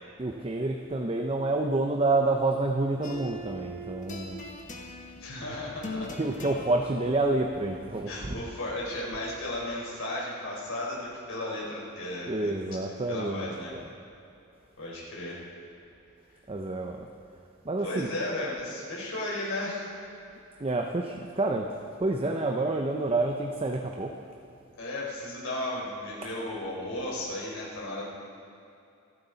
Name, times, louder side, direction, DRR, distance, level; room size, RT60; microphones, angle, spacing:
voice 1, 0.2-4.4 6.1-8.4 12.3-13.8 16.5-17.0 17.7-18.1 20.6-21.7 22.0-24.1, right 2 dB, 30° right, 2 dB, 0.7 m, -28 dB
sound 1, 3.0-9.7, equal, 35° left, 1.4 m, -43 dB
voice 2, 5.2-6.1 8.1-12.5 12.8-13.7 14.8-15.5 17.8-19.9 24.8-28.0, left 1 dB, 75° left, -4 dB, 4.4 m, -35 dB
27.0 x 9.8 x 4.0 m, 2.6 s
head